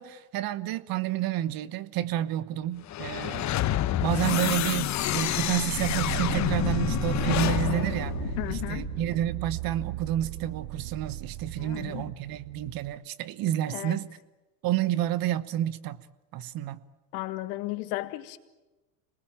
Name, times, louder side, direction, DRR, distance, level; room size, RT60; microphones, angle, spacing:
voice 1, 0.0-3.5 4.0-8.2 8.5-14.1 14.6-16.0 16.3-16.8, right 12 dB, 45° right, 16 dB, 1.2 m, -30 dB
sound 1, 2.8-9.1, left 12 dB, 35° left, 1.0 m, -28 dB
sound 2, 5.7-12.9, right 15 dB, 75° right, 1.1 m, -35 dB
voice 2, 8.4-8.9 11.6-12.1 13.7-14.0 17.1-18.4, left 18 dB, 70° left, 11 dB, 1.8 m, -34 dB
26.5 x 20.0 x 8.8 m, 1.1 s
hypercardioid pair, 100°, 47 cm